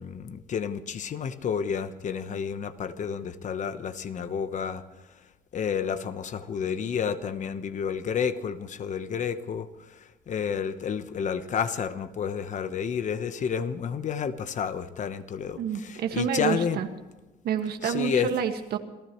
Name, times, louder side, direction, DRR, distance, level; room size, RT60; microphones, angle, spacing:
voice 1, 0.0-4.8 5.5-10.0 10.3-16.8 17.8-18.3, left 7 dB, 45° left, 11 dB, 1.1 m, -30 dB
voice 2, 15.6-16.9 17.4-18.8, right 8 dB, 70° right, 6 dB, 1.8 m, -28 dB
27.5 x 15.0 x 3.1 m, 1.2 s
cardioid pair, 110°, 17 cm